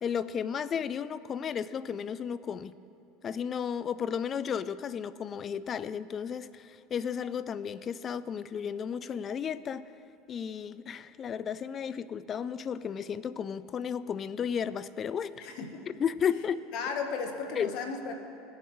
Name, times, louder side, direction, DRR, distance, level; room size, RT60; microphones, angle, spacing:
voice 1, 0.0-2.7 3.2-9.8 10.3-15.3 16.0-16.7 17.6-17.7, left 7 dB, 40° left, 16 dB, 0.4 m, -33 dB
voice 2, 15.4-15.8 16.7-18.2, left 5 dB, 65° left, 4 dB, 1.1 m, -35 dB
18.0 x 7.3 x 3.1 m, 2.8 s
hypercardioid pair, 90°, 0 cm